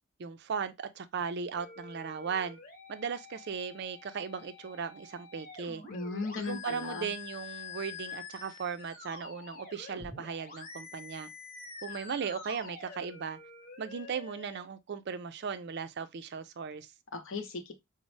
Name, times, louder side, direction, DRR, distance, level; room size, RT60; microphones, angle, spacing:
voice 1, 0.2-2.6 2.9-5.8 6.4-11.3 11.8-13.4 13.8-16.9, right 6 dB, 50° right, 0.4 m, -37 dB
sound 1, 1.6-14.6, left 5 dB, 45° left, 1.1 m, -47 dB
voice 2, 5.9-7.1 17.1-17.7, left 3 dB, 65° left, 0.8 m, -37 dB
5.1 x 2.0 x 3.1 m
head